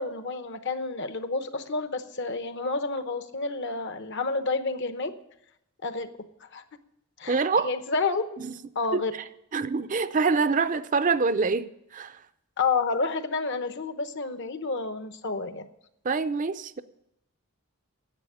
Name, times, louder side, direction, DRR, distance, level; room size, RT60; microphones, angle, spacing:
voice 1, 0.0-5.1 5.8-6.1 6.4-6.6 7.2-8.4 8.7-9.1 12.6-15.7, left 4 dB, 55° left, 10 dB, 0.9 m, -30 dB
voice 2, 7.3-7.7 8.4-8.5 8.9-9.0 9.5-12.2 16.0-16.8, right 4 dB, 35° right, 12 dB, 0.5 m, -25 dB
10.5 x 8.0 x 9.9 m, 0.83 s
head